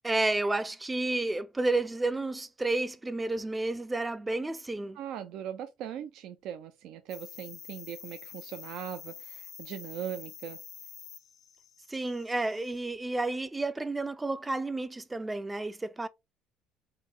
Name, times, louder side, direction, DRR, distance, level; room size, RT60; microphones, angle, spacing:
voice 1, 0.0-5.0 11.9-16.1, right 2 dB, 15° right, 0.4 m, -31 dB
voice 2, 4.9-10.6, right 9 dB, 70° right, 0.4 m, -40 dB
sound 1, 7.1-12.8, left 8 dB, 55° left, 0.6 m, -48 dB
3.8 x 2.1 x 3.9 m
supercardioid pair, 85°, 0 cm